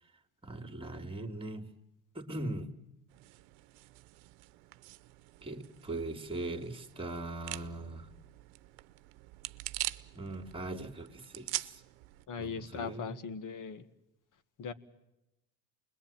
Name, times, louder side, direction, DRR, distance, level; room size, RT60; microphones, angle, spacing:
voice 1, 0.4-1.7 2.1-2.7 5.4-8.1 10.1-11.8 12.3-13.1, right 2 dB, 15° right, 7 dB, 2.8 m, -40 dB
sound 1, 3.1-12.3, right 20 dB, 90° right, 0.9 m, -44 dB
voice 2, 12.3-13.9 14.6-14.7, left 6 dB, 50° left, 12 dB, 2.0 m, -39 dB
29.5 x 21.5 x 9.1 m, 0.90 s
supercardioid pair, 95°, 41 cm